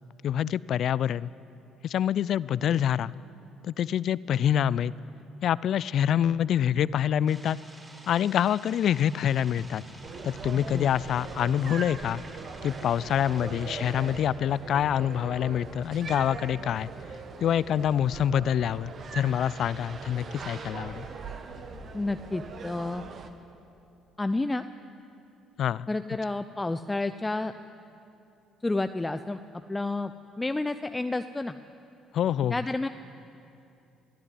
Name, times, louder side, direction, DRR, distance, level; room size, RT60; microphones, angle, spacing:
voice 1, 0.2-1.3 1.8-3.1 3.6-4.9 5.4-7.6 8.1-9.8 10.2-12.2 12.6-16.9 17.4-21.1 25.6-25.9 32.1-32.5, left 9 dB, 55° left, 20 dB, 0.4 m, -26 dB
sound 1, 7.3-14.2, right 1 dB, 20° right, 5.0 m, -50 dB
sound 2, 9.3-22.0, right 1 dB, 65° right, 2.8 m, -50 dB
sound 3, 10.0-23.3, right 4 dB, 45° right, 1.7 m, -41 dB
voice 2, 21.9-23.1 24.2-24.6 25.9-27.5 28.6-29.4 29.7-30.1 30.4-31.6 32.5-32.9, left 2 dB, 15° left, 10 dB, 0.6 m, -30 dB
22.0 x 14.5 x 9.4 m, 2.7 s
hypercardioid pair, 50°, 0 cm